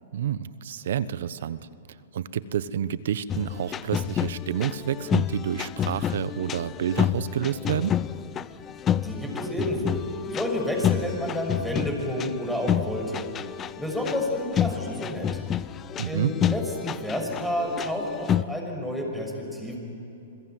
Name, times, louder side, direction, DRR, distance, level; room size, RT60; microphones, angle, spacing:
voice 1, 0.1-1.6 2.1-8.0 16.0-16.3, right 9 dB, 70° right, 16 dB, 1.0 m, -29 dB
sound 1, 3.3-18.4, left 9 dB, 25° left, 0.6 m, -29 dB
voice 2, 9.0-13.5 13.8-15.4 16.1-19.8, left 1 dB, ahead, 0 dB, 6.1 m, -30 dB
27.5 x 21.5 x 9.4 m, 2.8 s
hypercardioid pair, 135°, 0 cm